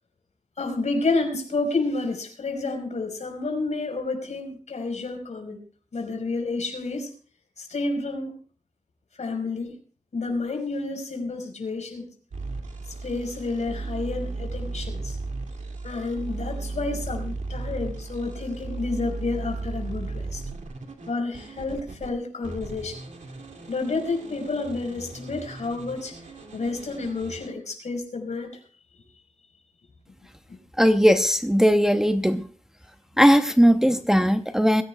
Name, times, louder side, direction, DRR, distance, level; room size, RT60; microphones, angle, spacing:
voice 1, 0.6-5.6 5.9-7.1 7.6-8.3 9.2-9.8 10.1-12.1 12.9-15.2 15.8-20.4 21.1-23.0 23.7-26.2 26.5-28.5, left 3 dB, 65° left, 3 dB, 4.9 m, -30 dB
sound 1, 12.3-22.1 22.4-27.5, right 3 dB, 75° right, 2.4 m, -35 dB
voice 2, 30.8-32.5 33.2-34.8, equal, 5° right, 7 dB, 0.7 m, -18 dB
22.5 x 16.0 x 2.3 m, 0.40 s
wide cardioid pair, 120°, 13 cm